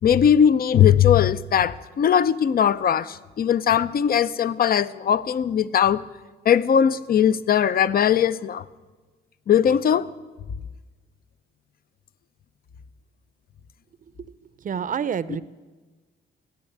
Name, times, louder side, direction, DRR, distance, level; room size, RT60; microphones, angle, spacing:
voice 1, 0.0-6.0 6.5-8.6 9.5-10.1, left 9 dB, 50° left, 16 dB, 0.6 m, -19 dB
voice 2, 14.6-15.4, right 7 dB, 40° right, 17 dB, 0.6 m, -28 dB
14.0 x 9.7 x 9.3 m, 1.3 s
cardioid pair, 90°, 20 cm